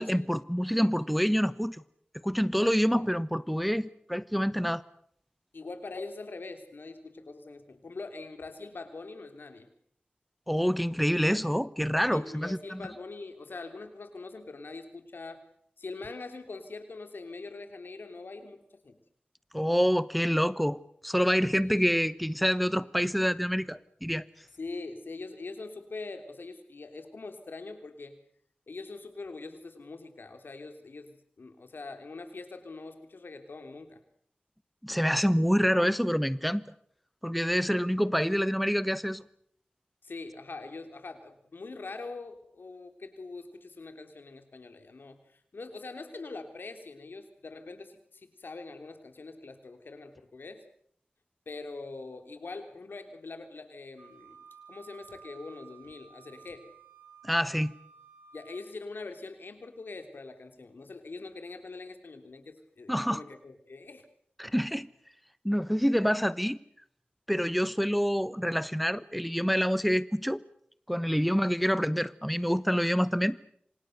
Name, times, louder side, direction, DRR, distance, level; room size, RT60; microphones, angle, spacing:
voice 1, 0.0-1.8 2.2-4.8 10.5-12.8 19.5-24.2 34.8-36.6 37.2-39.2 57.2-57.7 62.9-63.2 64.4-64.9 65.4-66.6 67.3-70.4 70.9-73.4, equal, ahead, 16 dB, 1.1 m, -27 dB
voice 2, 5.5-9.7 12.1-15.4 15.8-19.0 21.6-21.9 24.6-28.2 28.7-34.0 40.0-50.6 51.4-56.7 58.3-64.1 71.1-71.4, left 3 dB, 85° left, 8 dB, 3.3 m, -43 dB
Wind instrument woodwind instrument, 54.0-58.7, right 7 dB, 85° right, 7.4 m, -54 dB
27.0 x 26.5 x 6.7 m, 0.66 s
cardioid pair, 40°, 3 cm